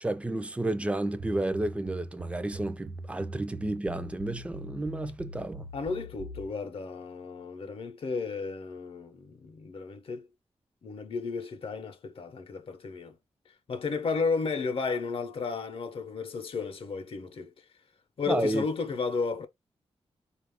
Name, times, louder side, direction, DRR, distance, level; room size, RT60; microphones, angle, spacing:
voice 1, 0.0-5.7 18.3-18.6, right 1 dB, 10° right, 0.4 m, -31 dB
sound 1, 1.2-6.5, right 1 dB, 70° right, 0.6 m, -42 dB
voice 2, 5.7-10.2 10.8-13.2 13.7-17.5 18.2-19.5, left 4 dB, 60° left, 0.7 m, -33 dB
4.0 x 2.4 x 3.4 m
wide cardioid pair, 155°, 11 cm